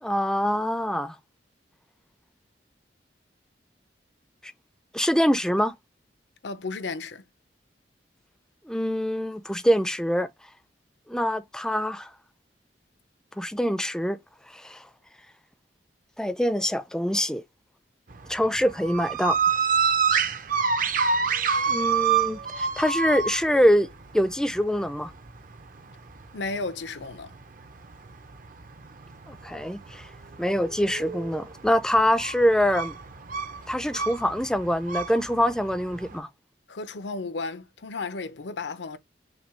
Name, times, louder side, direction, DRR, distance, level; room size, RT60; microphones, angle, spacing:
voice 1, 0.0-1.2 4.9-5.7 8.7-10.3 11.1-12.1 13.4-14.2 14.5-14.8 16.2-17.4 18.3-19.4 21.7-23.9 24.1-25.1 29.3-30.1 30.4-32.9 33.7-36.3, equal, 5° left, 0.5 m, -24 dB
voice 2, 6.4-7.2 26.3-27.3 36.7-39.0, left 3 dB, 80° left, 0.7 m, -33 dB
sound 1, 18.1-36.2, right 6 dB, 50° right, 0.7 m, -28 dB
6.0 x 2.3 x 3.1 m
head